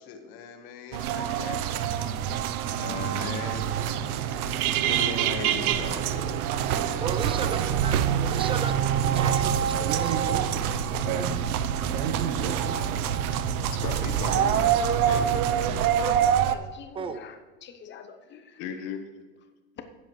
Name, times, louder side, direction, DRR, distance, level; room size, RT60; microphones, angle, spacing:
voice 1, 0.0-2.1 2.8-3.7 4.8-6.4 10.2-11.3 11.8-13.3 13.8-15.2 18.6-19.1, left 6 dB, 55° left, 6 dB, 1.5 m, -39 dB
sound 1, 0.9-16.6, right 9 dB, 85° right, 0.8 m, -26 dB
sound 2, 2.6-10.7, right 2 dB, 35° right, 2.0 m, -47 dB
voice 2, 7.0-7.5 7.8-8.0 8.2-8.7 9.1-10.4 16.9-17.2, right 5 dB, 15° right, 10 dB, 0.4 m, -34 dB
sound 3, 9.1-15.8, right 6 dB, 70° right, 1.1 m, -32 dB
voice 3, 12.8-13.3 16.5-17.3 17.6-18.4, left 7 dB, 25° left, 7 dB, 0.8 m, -46 dB
16.0 x 7.6 x 3.2 m, 1.4 s
supercardioid pair, 130°, 43 cm